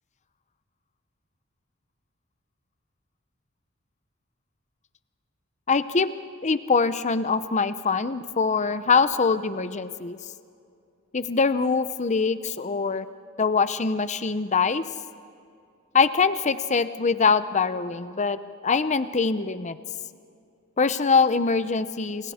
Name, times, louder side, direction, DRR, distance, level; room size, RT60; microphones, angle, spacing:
voice 1, 5.7-6.1 6.4-10.2 11.1-13.1 13.4-14.8 15.9-19.8 20.8-22.3, left 4 dB, 35° left, 13 dB, 0.7 m, -23 dB
30.0 x 27.0 x 4.3 m, 2.4 s
head